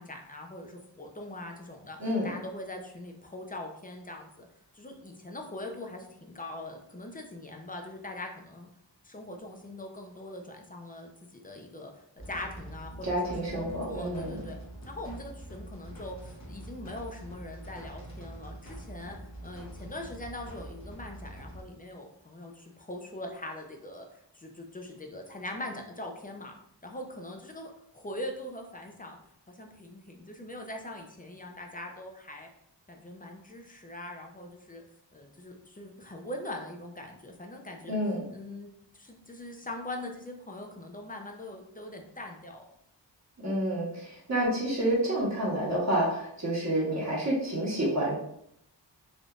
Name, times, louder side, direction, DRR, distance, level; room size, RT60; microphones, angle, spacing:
voice 1, 0.0-2.0 2.2-4.5 4.7-8.7 9.0-14.6 14.9-19.2 19.4-26.5 26.8-29.2 29.5-32.5 32.9-34.8 35.1-38.0 38.3-42.6, left 1 dB, 20° left, 2 dB, 0.5 m, -42 dB
voice 2, 2.0-2.3 13.0-14.4 37.9-38.2 43.4-48.2, right 1 dB, 40° right, -5 dB, 1.2 m, -29 dB
sound 1, 12.2-21.6, right 1 dB, 40° left, 0.9 m, -44 dB
3.5 x 2.5 x 2.4 m, 0.74 s
wide cardioid pair, 55°, 43 cm